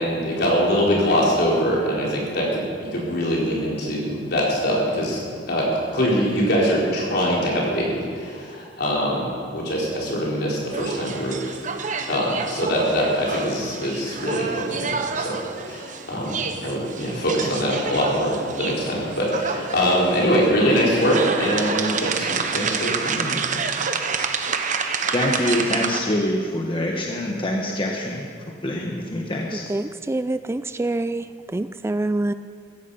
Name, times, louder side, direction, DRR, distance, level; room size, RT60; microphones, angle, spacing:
voice 1, 0.0-5.2 5.5-11.6 12.1-15.4 15.7-23.4, equal, 60° left, -4 dB, 4.6 m, -23 dB
sound 1, 10.7-26.0, right 5 dB, 45° right, 1.0 m, -28 dB
voice 2, 25.1-28.3 28.6-29.6, left 1 dB, 30° left, 0 dB, 1.3 m, -25 dB
voice 3, 29.5-31.3 31.5-32.3, right 2 dB, 15° right, 12 dB, 0.3 m, -26 dB
16.0 x 15.5 x 5.8 m, 2.2 s
head